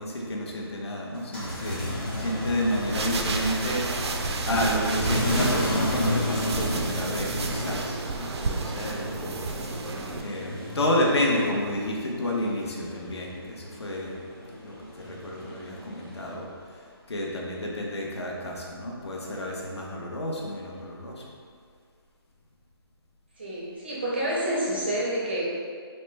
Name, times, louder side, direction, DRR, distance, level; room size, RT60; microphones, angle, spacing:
voice 1, 0.0-4.1 4.5-9.4 10.2-14.1 14.6-16.5 17.1-21.2, left 1 dB, 85° left, -2 dB, 0.7 m, -30 dB
sound 1, 1.1-11.9 12.2-16.3, left 1 dB, 25° left, 0.9 m, -33 dB
sound 2, 2.7-10.2, right 3 dB, 90° right, 0.4 m, -31 dB
voice 2, 23.4-25.4, right 1 dB, 25° right, -6 dB, 0.4 m, -28 dB
3.1 x 2.1 x 3.2 m, 2.1 s
hypercardioid pair, 175°, 14 cm